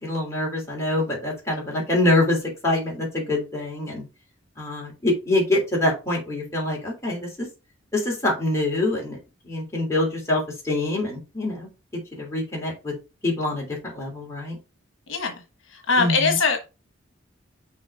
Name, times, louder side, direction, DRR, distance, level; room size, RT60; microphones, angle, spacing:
voice 1, 0.0-4.0 4.6-7.5 7.9-9.2 9.4-11.7 12.1-12.9 13.2-14.6 16.0-16.4, left 2 dB, 15° left, 3.0 m, -25 dB
voice 2, 15.7-16.6, left 4 dB, 70° left, 1.2 m, -21 dB
6.3 x 4.0 x 4.9 m
head